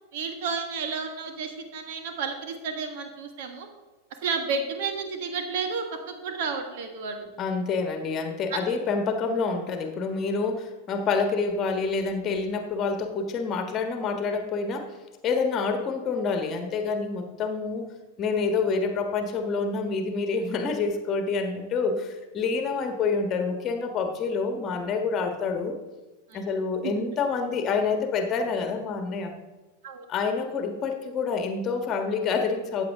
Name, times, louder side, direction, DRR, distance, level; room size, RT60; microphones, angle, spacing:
voice 1, 0.1-3.7 4.2-7.3 8.5-8.6 26.3-26.5 26.8-27.1 29.8-30.1, right 5 dB, 50° right, 5 dB, 1.6 m, -31 dB
voice 2, 7.4-14.9 15.2-17.9 18.2-25.8 26.3-29.3 30.1-32.8, left 4 dB, 30° left, 6 dB, 1.5 m, -27 dB
14.0 x 8.4 x 3.6 m, 1.2 s
figure-of-eight pair, 90°, 0 cm